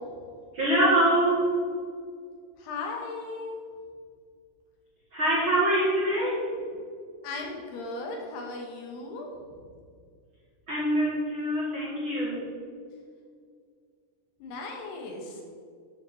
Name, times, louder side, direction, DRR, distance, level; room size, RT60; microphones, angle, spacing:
voice 1, 0.5-1.5 5.1-6.5 10.7-12.4, right 1 dB, 40° right, -7 dB, 2.0 m, -24 dB
voice 2, 2.6-3.6 7.2-9.3 14.4-15.4, left 3 dB, 75° left, 1 dB, 3.4 m, -37 dB
9.6 x 6.6 x 6.4 m, 2.1 s
omnidirectional pair, 4.7 m